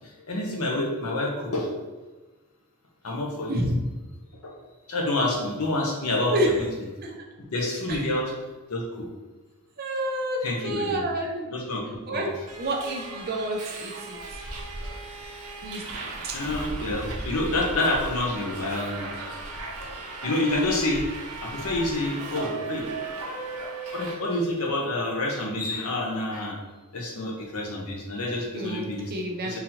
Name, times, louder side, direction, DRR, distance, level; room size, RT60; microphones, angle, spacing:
voice 1, 0.3-1.7 3.0-3.6 4.4-4.5 4.9-6.9 7.5-8.3 8.7-9.1 10.4-11.0 11.5-12.3 14.4-14.6 15.9-16.0 16.3-19.1 20.2-21.1 21.4-22.9 23.9-26.6 26.9-29.1 29.4-29.6, left 1 dB, 75° left, 0 dB, 0.8 m, -28 dB
voice 2, 3.5-3.8 6.3-6.5 7.0-7.1 7.9-8.0 9.8-11.5 12.1-12.3 12.5-14.2 15.6-15.8 16.2-16.4 28.5-29.6, right 1 dB, 45° right, 1 dB, 0.6 m, -29 dB
Subway metro underground, 12.5-24.1, right 2 dB, 85° right, 0.7 m, -36 dB
3.9 x 2.7 x 2.8 m, 1.2 s
head